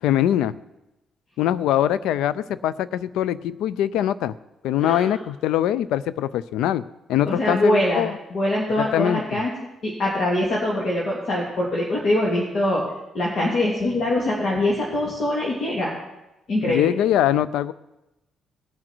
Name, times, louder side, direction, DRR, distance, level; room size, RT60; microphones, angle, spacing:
voice 1, 0.0-0.6 1.4-4.3 4.6-6.8 7.1-8.2 8.8-9.4 16.6-17.7, left 11 dB, 90° left, 18 dB, 0.4 m, -22 dB
voice 2, 4.8-5.2 7.2-9.5 9.8-12.8 13.1-15.9 16.5-17.0, left 1 dB, 55° left, -4 dB, 2.6 m, -23 dB
19.0 x 6.4 x 4.5 m, 0.96 s
cardioid pair, 90°, 0 cm